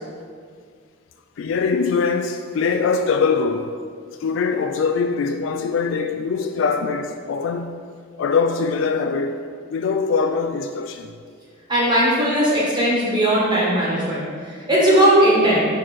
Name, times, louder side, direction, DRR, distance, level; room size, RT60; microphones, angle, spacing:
voice 1, 1.4-3.8 4.2-7.8 8.2-9.5 9.7-11.1, left 5 dB, 75° left, 0.3 m, -22 dB
voice 2, 11.7-15.7, right 1 dB, 20° right, 1.5 m, -18 dB
6.1 x 4.7 x 4.3 m
head